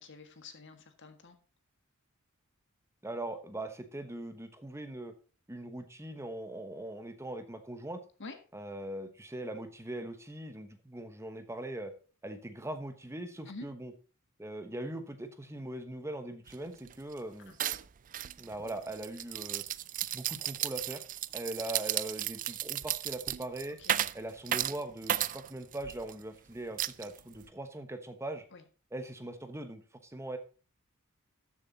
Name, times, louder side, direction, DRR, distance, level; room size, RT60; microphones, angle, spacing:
voice 1, 0.0-1.4 8.2-8.4 13.5-13.7 17.4-17.6 23.8-24.0 28.5-28.6, left 3 dB, 60° left, 8 dB, 1.7 m, -47 dB
voice 2, 3.0-5.1 5.5-8.0 8.5-11.9 12.2-13.9 14.4-17.5 18.4-19.6 20.1-21.0 21.3-23.8 24.1-28.4 28.9-30.4, right 1 dB, 15° right, 8 dB, 1.1 m, -41 dB
sound 1, 16.5-16.6 16.9-17.2 17.6-26.1 26.8-27.5, right 12 dB, 40° right, 0.4 m, -34 dB
13.0 x 7.1 x 4.1 m, 0.36 s
head